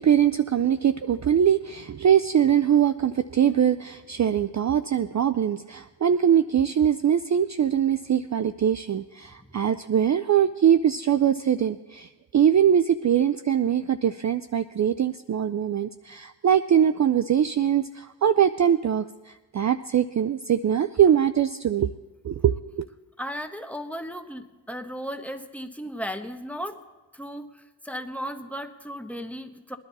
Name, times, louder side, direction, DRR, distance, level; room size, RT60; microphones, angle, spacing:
voice 1, 0.0-21.9 22.2-22.8, right 9 dB, 40° right, 12 dB, 0.5 m, -22 dB
voice 2, 23.2-26.8 27.1-29.8, equal, 5° left, 6 dB, 1.3 m, -35 dB
21.5 x 10.5 x 4.1 m, 1.2 s
cardioid pair, 45°, 46 cm